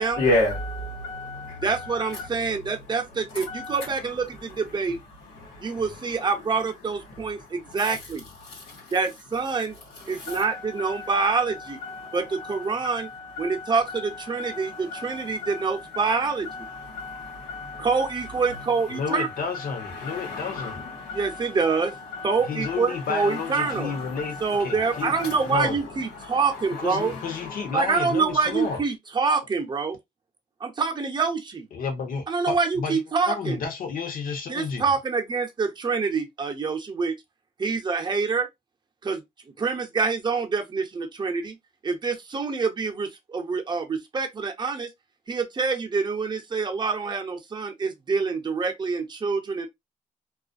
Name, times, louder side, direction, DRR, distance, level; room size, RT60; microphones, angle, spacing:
voice 1, 0.0-2.1 3.3-3.9 5.4-5.8 8.4-8.8 10.1-16.2 16.5-18.1 19.0-19.2 19.5-21.8 22.1-22.4 22.6-22.8 23.2-23.3 23.6-25.4 26.3-26.4 26.9-27.6, left 2 dB, 85° left, 1.1 m, -33 dB
voice 2, 1.6-5.0 5.6-8.2 8.9-9.7 10.1-11.8 12.1-13.1 13.4-16.5 17.8-19.3 21.1-21.9 22.2-23.9 24.4-27.1 27.7-30.0 30.6-31.7 32.3-33.6 34.5-37.1 37.6-38.5 39.0-39.2 39.6-41.6 41.8-44.9 45.3-49.7, right 4 dB, 30° right, 0.6 m, -26 dB
voice 3, 18.9-20.8 22.4-25.1 25.5-25.8 26.8-28.8 31.7-33.0 33.3-34.8, left 5 dB, 65° left, 0.9 m, -31 dB
2.4 x 2.1 x 2.5 m
cardioid pair, 85°, 16 cm